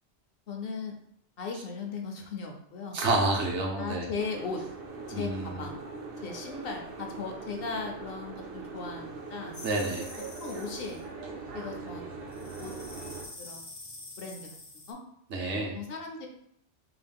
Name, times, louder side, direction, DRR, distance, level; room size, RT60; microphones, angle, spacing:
voice 1, 0.5-0.9 1.4-3.0 3.8-4.6 5.1-5.8 6.2-9.6 10.4-11.0 11.5-12.1 12.6-12.7 13.4-13.6 14.2-14.6 14.9-15.0 15.7-16.3, left 4 dB, 65° left, 2 dB, 0.7 m, -37 dB
voice 2, 2.9-4.0 5.1-5.6 9.6-10.0 15.3-15.7, right 2 dB, 80° right, -1 dB, 1.1 m, -29 dB
Boat Water vehicle, 4.2-13.3, right 3 dB, 60° right, 0.7 m, -41 dB
sound 1, 9.5-11.0 12.3-14.9, left 2 dB, 35° left, 0.4 m, -46 dB
3.8 x 2.3 x 3.4 m, 0.71 s
omnidirectional pair, 1.2 m